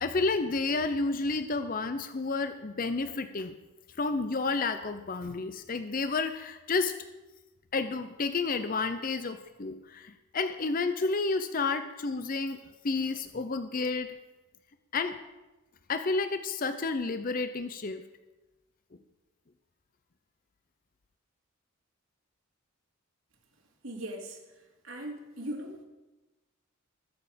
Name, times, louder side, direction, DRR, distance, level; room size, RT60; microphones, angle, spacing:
voice 1, 0.0-3.5 4.0-7.0 7.7-12.6 12.8-14.1 14.9-15.2 15.9-18.0, left 3 dB, 40° left, 9 dB, 0.6 m, -30 dB
voice 2, 23.8-25.8, right 1 dB, 70° right, 0 dB, 2.7 m, -40 dB
21.0 x 7.1 x 5.1 m, 1.1 s
head